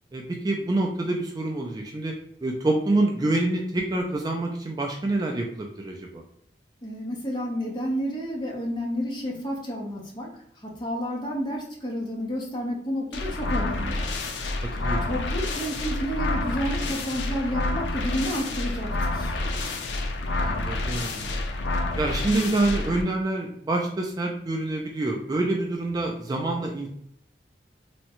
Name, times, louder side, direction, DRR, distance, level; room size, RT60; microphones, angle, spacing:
voice 1, 0.1-2.1 2.4-6.2 14.8-15.0 20.4-21.3 22.0-26.9, right 2 dB, 20° right, 1 dB, 0.3 m, -26 dB
voice 2, 6.8-14.1 15.0-19.3, equal, 25° left, -2 dB, 0.7 m, -30 dB
sound 1, 13.1-23.0, left 2 dB, 80° left, 0.4 m, -28 dB
3.5 x 2.1 x 2.9 m, 0.67 s
head